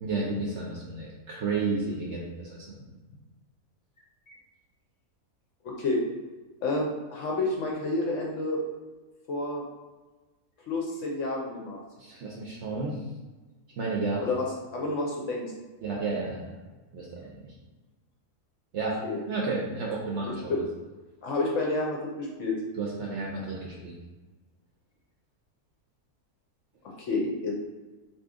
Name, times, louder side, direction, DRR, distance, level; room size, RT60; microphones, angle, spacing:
voice 1, 0.0-2.7 12.0-13.0 13.8-14.2 15.8-16.5 16.9-17.5 18.7-19.0 19.3-20.5 22.8-23.9, right 3 dB, 65° right, -3 dB, 0.7 m, -32 dB
voice 2, 5.6-6.0 6.6-8.6 9.3-9.6 10.7-11.8 14.2-14.4 14.7-15.5 19.0-19.2 20.5-20.6 21.2-22.5 27.0-27.5, left 2 dB, 65° left, -2 dB, 0.8 m, -29 dB
2.8 x 2.7 x 3.5 m, 1.2 s
omnidirectional pair, 1.6 m